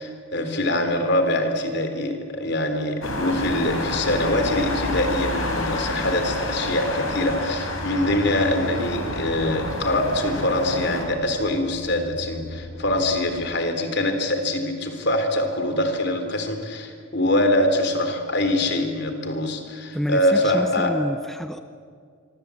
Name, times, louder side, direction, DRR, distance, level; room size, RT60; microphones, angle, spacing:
voice 1, 0.0-20.9, left 1 dB, 55° left, 7 dB, 3.8 m, -24 dB
sound 1, 3.0-11.0, left 2 dB, 90° left, 5.7 m, -29 dB
sound 2, 3.7-13.6, left 1 dB, 70° left, 2.8 m, -38 dB
voice 2, 19.9-21.6, equal, ahead, 8 dB, 0.7 m, -28 dB
25.0 x 24.5 x 8.6 m, 2.1 s
head